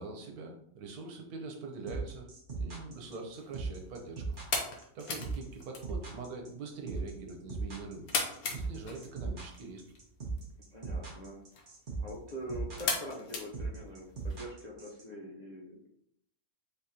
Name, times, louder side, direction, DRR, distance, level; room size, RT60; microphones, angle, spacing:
voice 1, 0.0-4.4 4.9-8.2 8.5-9.8, right 3 dB, 80° right, 3 dB, 1.3 m, -43 dB
sound 1, 1.9-15.0, right 4 dB, 40° right, 0.9 m, -39 dB
sound 2, 3.0-14.4, left 4 dB, 75° left, 1.3 m, -40 dB
voice 2, 10.5-11.4 12.0-15.8, equal, 50° left, -5 dB, 0.5 m, -44 dB
3.9 x 3.7 x 2.8 m, 0.72 s
omnidirectional pair, 1.6 m